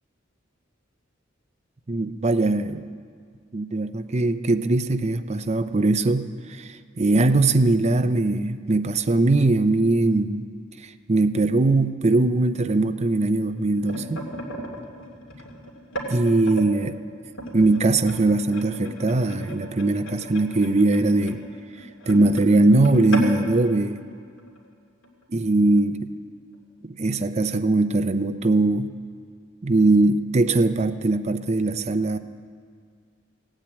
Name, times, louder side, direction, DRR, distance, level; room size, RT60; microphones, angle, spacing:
voice 1, 1.9-2.8 3.5-10.5 10.8-14.3 16.1-17.0 17.5-21.4 22.1-24.0 25.3-26.1 26.8-28.9 29.6-32.2, right 2 dB, 35° right, 9 dB, 0.6 m, -21 dB
sound 1, 13.4-16.7 17.3-24.7 25.0-25.2 25.5-25.8 26.5-26.6, equal, 85° left, 2.5 m, -34 dB
16.5 x 9.0 x 8.5 m, 2.1 s
head